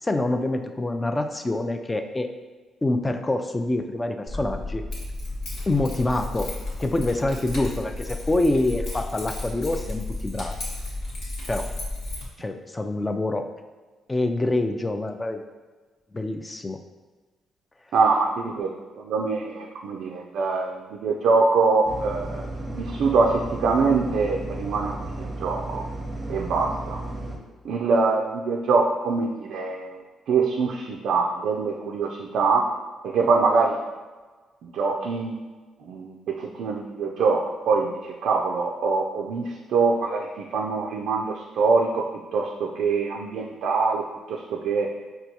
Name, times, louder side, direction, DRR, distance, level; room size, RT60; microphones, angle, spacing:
voice 1, 0.0-2.3 2.8-4.8 5.7-6.5 6.8-10.6 11.5-11.7 12.4-13.4 14.1-15.4 16.1-16.8, left 2 dB, 20° left, 6 dB, 0.3 m, -26 dB
Keys jangling, 4.3-12.2, left 2 dB, 70° left, 1.1 m, -33 dB
voice 2, 17.9-18.7 19.0-25.8 26.3-27.0 27.6-30.0 30.3-32.7 33.0-33.8 34.6-35.4 35.8-42.1 42.3-44.9, right 4 dB, 75° right, 0 dB, 0.3 m, -24 dB
sound 1, 21.9-27.4, right 2 dB, 15° right, 0.7 m, -34 dB
4.4 x 2.3 x 2.8 m, 1.3 s
cardioid pair, 90°, 0 cm